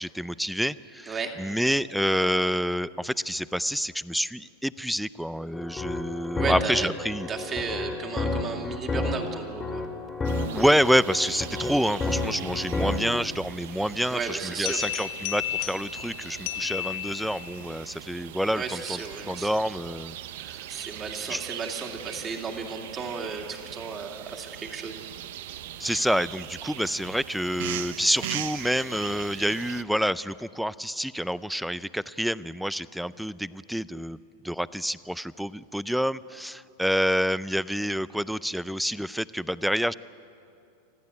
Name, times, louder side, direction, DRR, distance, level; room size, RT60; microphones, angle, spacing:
voice 1, 0.0-7.3 10.4-19.0 19.3-20.2 20.4-20.6 21.3-21.4 25.8-34.2 34.4-39.9, equal, ahead, 17 dB, 0.5 m, -28 dB
sound 1, 5.5-13.2, left 3 dB, 15° left, 2.0 m, -31 dB
voice 2, 6.4-6.9 7.3-9.9 14.1-14.8 18.5-19.5 20.7-25.0, right 5 dB, 25° right, 3 dB, 2.6 m, -34 dB
sound 2, 10.2-29.8, right 12 dB, 70° right, 0.8 m, -40 dB
sound 3, 14.7-17.6, left 13 dB, 60° left, 2.0 m, -33 dB
25.5 x 14.5 x 9.6 m, 2.7 s
supercardioid pair, 135°, 0 cm